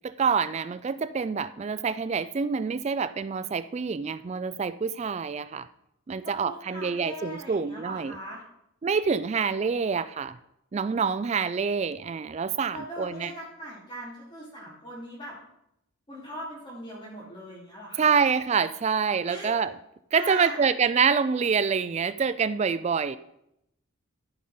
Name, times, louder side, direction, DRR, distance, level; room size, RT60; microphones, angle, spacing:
voice 1, 0.0-5.7 6.1-8.1 8.8-10.4 10.7-13.3 18.0-19.7 20.1-23.2, right 6 dB, 30° right, 14 dB, 0.3 m, -26 dB
voice 2, 6.2-8.4 12.7-15.4 16.1-18.2 19.2-19.5 20.1-20.6, equal, 25° left, -8 dB, 2.7 m, -40 dB
14.5 x 5.0 x 5.5 m, 0.79 s
head